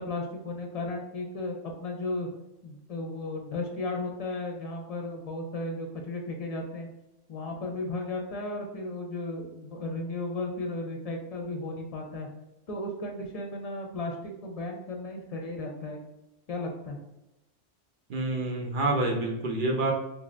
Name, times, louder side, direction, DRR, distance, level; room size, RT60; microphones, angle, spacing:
voice 1, 0.0-2.3 2.6-6.9 7.3-12.3 12.7-16.0 16.5-17.0, left 2 dB, 40° left, 1 dB, 0.6 m, -35 dB
voice 2, 18.1-19.9, right 2 dB, 55° right, 1 dB, 0.7 m, -27 dB
3.4 x 2.6 x 3.2 m, 0.91 s
omnidirectional pair, 1.1 m